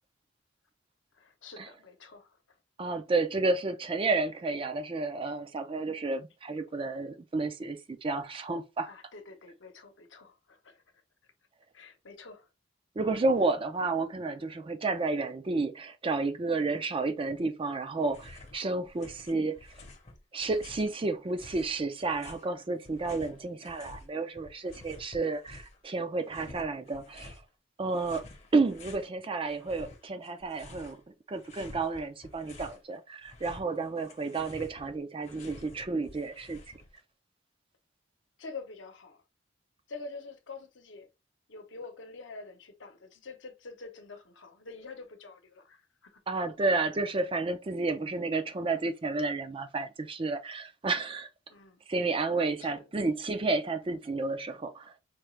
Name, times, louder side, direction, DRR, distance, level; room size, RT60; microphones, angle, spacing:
voice 1, 1.1-2.6 8.9-10.8 11.7-12.5 38.4-39.2 39.9-41.1 41.5-46.2 51.5-51.8 52.6-52.8, left 3 dB, 70° left, 0.8 m, -46 dB
voice 2, 2.8-8.9 13.0-19.6 20.3-27.4 27.8-28.3 28.5-31.0 31.3-36.6 46.3-51.3 51.9-54.9, right 3 dB, 25° right, 0.4 m, -31 dB
sound 1, 18.0-18.6 18.8-20.9 21.4-24.1 24.3-25.8 26.3-27.4 27.9-29.1 29.5-31.0 31.3-32.8 33.1-37.0, left 2 dB, 35° left, 0.8 m, -50 dB
4.5 x 2.4 x 3.1 m
head